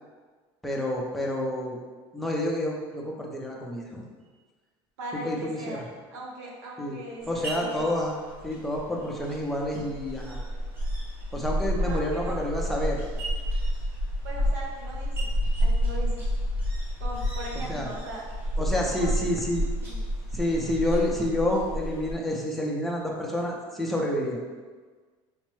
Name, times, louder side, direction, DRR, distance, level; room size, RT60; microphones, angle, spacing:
voice 1, 0.6-1.8 2.1-4.0 5.2-5.8 6.8-7.0 7.3-8.2 8.4-10.5 11.3-13.0 17.7-17.9 18.6-19.6 20.3-24.4, left 1 dB, ahead, -2 dB, 0.4 m, -29 dB
voice 2, 5.0-7.9 11.8-12.4 14.2-16.2 17.0-18.2 18.8-19.2 19.8-20.0, right 1 dB, 85° right, -2 dB, 0.9 m, -39 dB
sound 1, 7.2-22.1, equal, 20° right, 1.0 m, -30 dB
4.4 x 2.0 x 3.0 m, 1.4 s
cardioid pair, 155°, 12 cm